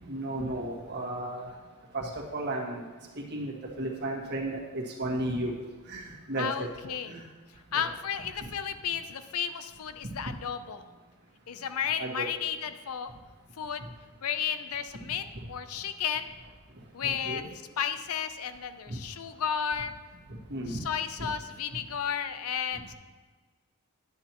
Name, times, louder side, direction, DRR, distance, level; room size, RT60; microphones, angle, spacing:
voice 1, 0.0-1.5 1.9-2.8 3.3-5.5 5.9-6.7 7.1-7.2 7.7-7.9 10.0-10.2 12.0-12.3 15.3-15.4 17.0-17.5 18.9-19.0 20.5-20.8 21.2-21.3, right 1 dB, 50° right, -2 dB, 1.7 m, -34 dB
voice 2, 6.4-7.1 7.7-10.8 11.5-13.1 13.6-13.9 14.2-16.3 16.9-17.4 17.8-19.9 20.7-22.9, left 8 dB, 75° left, 10 dB, 0.5 m, -33 dB
11.0 x 9.0 x 3.0 m, 1.4 s
head